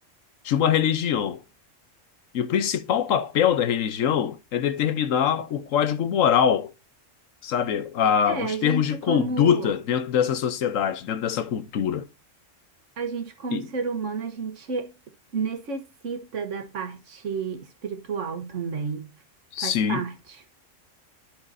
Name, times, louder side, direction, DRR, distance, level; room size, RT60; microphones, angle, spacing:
voice 1, 0.4-1.4 2.3-6.7 7.4-12.0 13.5-13.7 19.5-20.0, left 8 dB, 85° left, 1.2 m, -23 dB
voice 2, 8.3-9.8 13.0-14.9 15.3-19.1 19.6-20.1, right 5 dB, 70° right, 1.5 m, -31 dB
11.5 x 4.7 x 2.6 m
omnidirectional pair, 1.3 m